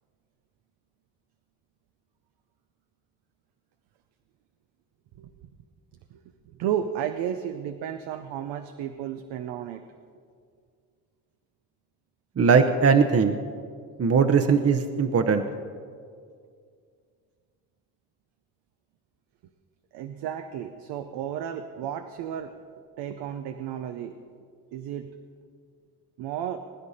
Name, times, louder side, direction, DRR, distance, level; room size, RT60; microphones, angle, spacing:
voice 1, 6.1-9.8 19.9-22.5 23.0-24.2 24.7-25.1 26.2-26.6, right 9 dB, 90° right, 7 dB, 0.7 m, -33 dB
voice 2, 12.4-13.3 14.0-15.4, right 5 dB, 40° right, 6 dB, 0.8 m, -20 dB
21.5 x 10.0 x 4.2 m, 2.2 s
cardioid pair, 70°, 39 cm